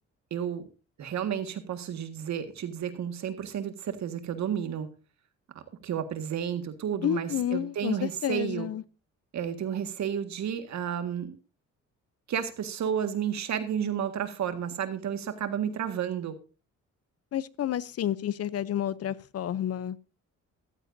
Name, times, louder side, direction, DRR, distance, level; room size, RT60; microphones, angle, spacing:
voice 1, 0.3-0.7 1.0-4.9 5.8-8.7 9.3-11.4 12.3-16.4, right 8 dB, 65° right, 1.8 m, -31 dB
voice 2, 7.0-8.0 8.2-8.8 17.3-20.0, left 11 dB, 55° left, 0.6 m, -30 dB
14.5 x 14.0 x 2.7 m
cardioid pair, 90°, 30 cm